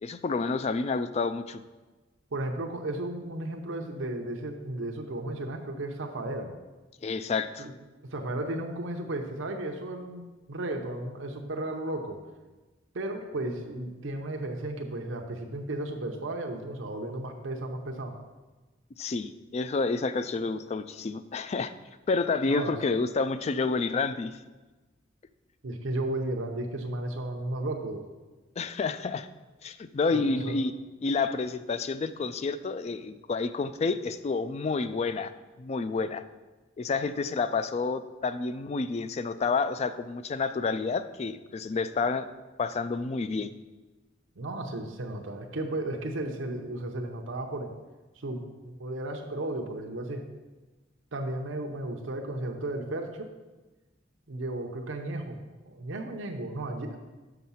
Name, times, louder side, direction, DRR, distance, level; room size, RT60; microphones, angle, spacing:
voice 1, 0.0-1.6 7.0-7.7 19.0-21.7 22.1-24.3 28.6-29.3 29.6-30.7 31.0-35.3 35.6-36.2 36.8-42.3 42.6-43.5, left 4 dB, 35° left, 12 dB, 0.3 m, -29 dB
voice 2, 2.3-6.5 7.6-7.7 8.1-12.2 12.9-18.1 22.5-22.8 25.6-28.1 30.1-30.6 44.4-47.7 48.2-50.2 51.1-53.3 54.3-57.0, right 1 dB, 85° right, 3 dB, 0.7 m, -34 dB
6.4 x 5.9 x 5.5 m, 1.2 s
head